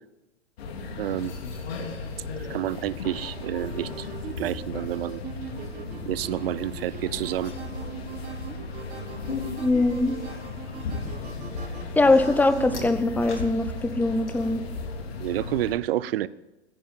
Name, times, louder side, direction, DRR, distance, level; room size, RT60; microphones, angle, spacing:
sound 1, 0.6-15.7, left 4 dB, 65° left, 2.6 m, -36 dB
voice 1, 1.0-1.3 2.5-4.1 4.4-5.2 6.1-7.5 15.2-16.3, right 13 dB, 60° right, 19 dB, 0.7 m, -29 dB
sound 2, 3.4-12.7, right 5 dB, 25° right, 6.1 m, -41 dB
sound 3, 9.3-14.3, left 5 dB, 90° left, 3.7 m, -39 dB
voice 2, 9.6-10.1 12.0-14.6, left 2 dB, 5° left, 11 dB, 0.9 m, -22 dB
16.0 x 10.0 x 7.4 m, 1.0 s
hypercardioid pair, 110°, 33 cm